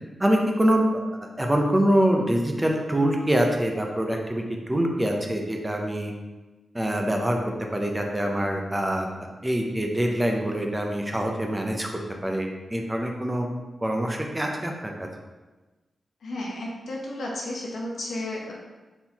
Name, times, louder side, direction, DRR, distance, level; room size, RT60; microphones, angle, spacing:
voice 1, 0.2-6.1 6.7-9.1 9.4-11.9 12.2-13.5 13.8-15.1, right 1 dB, 10° right, 1 dB, 0.5 m, -25 dB
voice 2, 16.2-18.5, left 1 dB, 75° left, -2 dB, 0.9 m, -33 dB
4.2 x 3.7 x 2.9 m, 1.2 s
wide cardioid pair, 165°, 0 cm